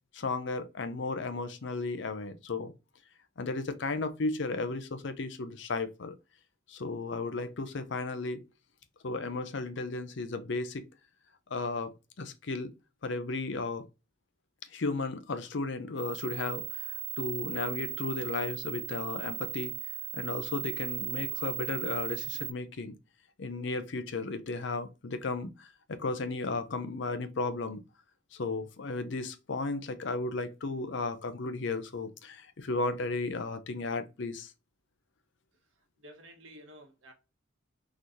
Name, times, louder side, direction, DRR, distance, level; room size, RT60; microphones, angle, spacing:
voice 1, 0.1-2.7 3.4-6.2 6.7-8.4 9.0-10.8 11.5-12.7 13.0-13.8 14.7-19.7 20.1-23.0 23.4-27.8 28.3-34.5, left 3 dB, 60° left, 0.6 m, -34 dB
sound 1, 16.0-22.5, right 12 dB, 35° right, 0.5 m, -37 dB
voice 2, 36.0-37.1, equal, 75° right, 1.2 m, -51 dB
3.9 x 3.1 x 2.7 m
head